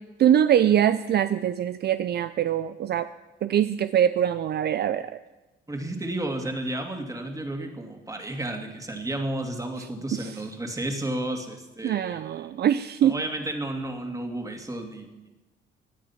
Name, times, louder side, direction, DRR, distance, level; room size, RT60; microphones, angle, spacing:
voice 1, 0.2-3.1 3.4-5.2 10.1-10.4 11.8-13.2, right 10 dB, 55° right, 12 dB, 0.5 m, -23 dB
voice 2, 5.7-12.4 13.0-15.3, right 1 dB, 15° right, 4 dB, 2.4 m, -32 dB
18.0 x 10.0 x 5.8 m, 1.1 s
cardioid pair, 90°, 20 cm